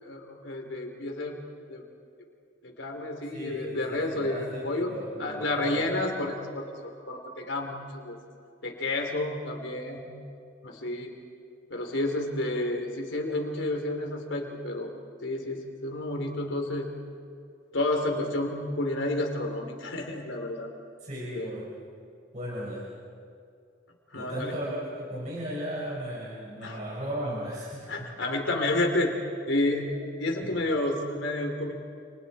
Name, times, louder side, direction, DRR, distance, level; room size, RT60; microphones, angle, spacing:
voice 1, 0.0-1.4 1.7-1.8 2.6-4.9 5.2-8.2 8.6-10.1 10.6-11.1 11.7-14.9 15.2-16.9 17.7-20.7 21.3-21.5 24.1-24.6 26.6-26.8 27.9-29.1 29.5-31.7, left 2 dB, 75° left, 3 dB, 3.7 m, -30 dB
voice 2, 3.3-5.9 21.0-21.7 22.3-22.9 24.2-28.1 30.4-30.5, equal, 40° right, -6 dB, 5.4 m, -36 dB
29.5 x 29.5 x 4.5 m, 2.4 s
head